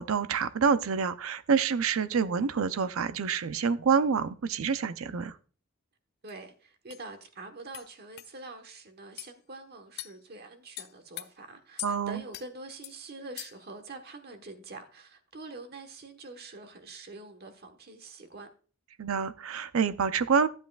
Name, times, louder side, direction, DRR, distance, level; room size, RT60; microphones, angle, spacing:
voice 1, 0.0-5.3 11.8-12.2 19.0-20.5, right 6 dB, 80° right, 0.5 m, -27 dB
voice 2, 6.2-18.5, right 3 dB, 50° right, 1.3 m, -45 dB
sound 1, 6.3-6.4 6.9-7.0 7.7-7.9 8.2-8.3 9.2-9.3 10.0-10.2 10.8-11.3 11.8-11.9 12.3-12.5 12.8-13.0 13.4-13.7, left 15 dB, 50° left, 0.4 m, -41 dB
12.5 x 8.0 x 2.4 m
head